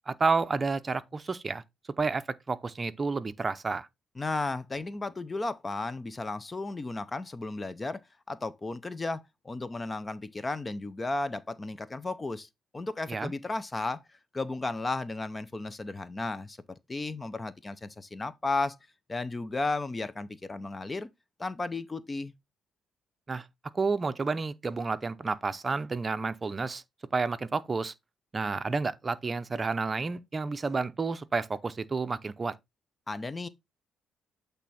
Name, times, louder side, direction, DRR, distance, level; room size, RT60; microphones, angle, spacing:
voice 1, 0.0-1.6 2.0-3.9 13.1-13.3 23.3-23.4 23.7-26.8 27.1-27.9 28.3-32.5, right 4 dB, 30° right, 0.6 m, -30 dB
voice 2, 4.2-8.0 8.3-16.6 16.9-18.8 19.1-21.1 21.4-22.3 33.1-33.5, left 3 dB, 25° left, 0.6 m, -34 dB
8.2 x 3.4 x 4.2 m
cardioid pair, 90°, 0 cm